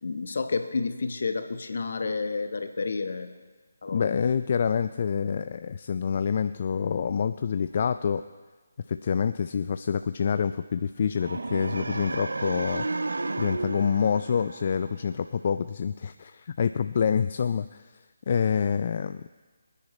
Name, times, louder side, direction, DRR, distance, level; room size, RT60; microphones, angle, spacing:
voice 1, 0.0-3.4 3.8-4.1, left 4 dB, 60° left, 8 dB, 1.1 m, -30 dB
voice 2, 3.9-8.2 8.9-12.9 13.4-17.8 18.3-19.2, left 6 dB, 45° left, 11 dB, 0.4 m, -27 dB
sound 1, 11.2-15.3, right 3 dB, 75° right, 0.6 m, -33 dB
24.5 x 10.0 x 3.2 m, 1.4 s
figure-of-eight pair, 150°, 0 cm